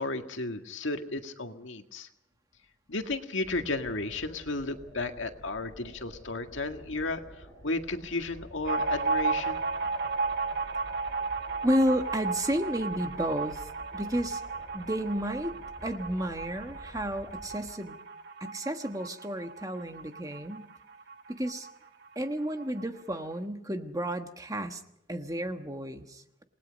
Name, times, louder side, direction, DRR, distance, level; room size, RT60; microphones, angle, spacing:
voice 1, 0.0-2.1 2.9-9.6, left 2 dB, 75° left, 6 dB, 1.9 m, -34 dB
sound 1, 3.4-17.7, right 1 dB, 10° left, 7.1 m, -50 dB
sound 2, 8.6-21.8 22.1-22.2 22.4-23.2, right 4 dB, 55° right, 1.3 m, -34 dB
voice 2, 11.6-13.7 13.9-14.4 14.7-15.5 15.8-18.0 18.4-20.6 21.3-21.7 22.1-24.8 25.1-26.4, equal, 20° right, 6 dB, 1.4 m, -31 dB
28.0 x 19.5 x 5.3 m, 0.78 s
head